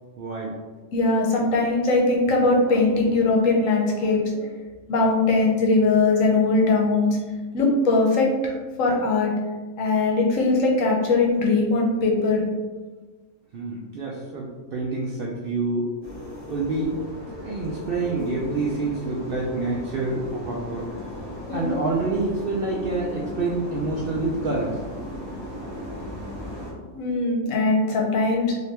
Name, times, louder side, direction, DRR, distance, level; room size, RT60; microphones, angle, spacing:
voice 1, 0.2-0.5 13.5-15.9 16.5-16.9 17.4-20.9 21.5-24.8, right 3 dB, 70° right, -4 dB, 0.5 m, -27 dB
voice 2, 0.9-4.5 4.9-7.2 7.5-8.5 8.8-9.3 9.8-12.4 21.5-21.8 26.9-28.6, left 3 dB, 70° left, 0 dB, 1.1 m, -20 dB
sound 1, 16.0-26.7, left 1 dB, 25° right, 0.7 m, -36 dB
3.3 x 2.8 x 2.8 m, 1.3 s
omnidirectional pair, 1.4 m